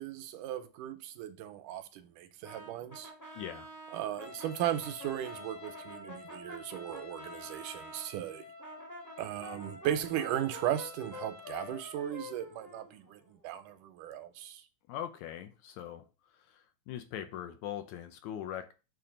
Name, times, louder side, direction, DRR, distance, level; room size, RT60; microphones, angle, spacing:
voice 1, 0.0-3.1 3.9-8.4 9.2-14.6, right 11 dB, 80° right, 2.2 m, -36 dB
Brass instrument, 2.4-8.1 8.6-13.4, left 1 dB, 15° left, 0.7 m, -48 dB
voice 2, 3.4-3.7 14.9-16.1 16.5-18.7, left 10 dB, 75° left, 1.9 m, -41 dB
Trumpet, 4.2-11.9, left 4 dB, 50° left, 1.5 m, -50 dB
6.9 x 3.2 x 5.0 m
omnidirectional pair, 3.7 m